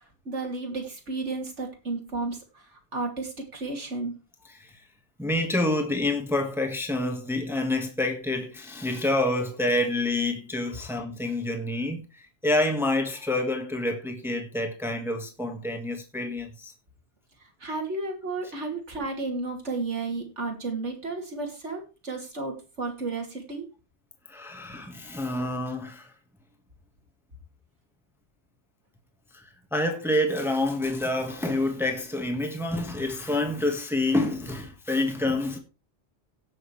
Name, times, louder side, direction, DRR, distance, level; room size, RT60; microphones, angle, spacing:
voice 1, 0.2-4.1 17.6-23.7, right 3 dB, 85° right, 3.0 m, -33 dB
voice 2, 5.2-16.7 24.3-26.1 29.3-29.4 29.7-35.6, left 1 dB, ahead, 1.5 m, -27 dB
17.0 x 6.5 x 3.2 m
omnidirectional pair, 1.2 m